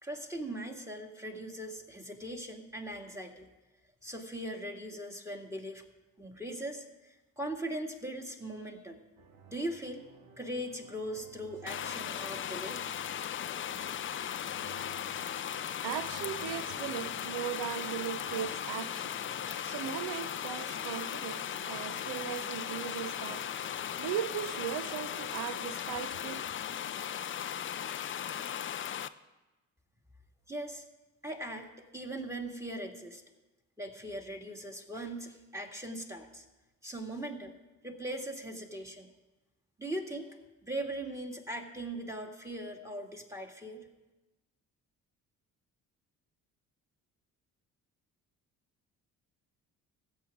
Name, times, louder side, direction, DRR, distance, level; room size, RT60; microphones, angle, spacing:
voice 1, 0.0-3.5 4.0-5.8 6.2-9.0 9.5-10.1 10.4-13.0 30.5-30.8 31.2-33.2 33.8-36.5 36.8-37.6 37.8-39.1 39.8-43.9, right 1 dB, 5° right, 2.1 m, -40 dB
sound 1, 9.2-26.0, right 5 dB, 85° right, 1.1 m, -56 dB
sound 2, 11.7-29.1, left 9 dB, 30° left, 0.4 m, -37 dB
voice 2, 15.6-26.6, right 11 dB, 65° right, 0.8 m, -38 dB
19.5 x 8.3 x 3.6 m
hypercardioid pair, 50°, 42 cm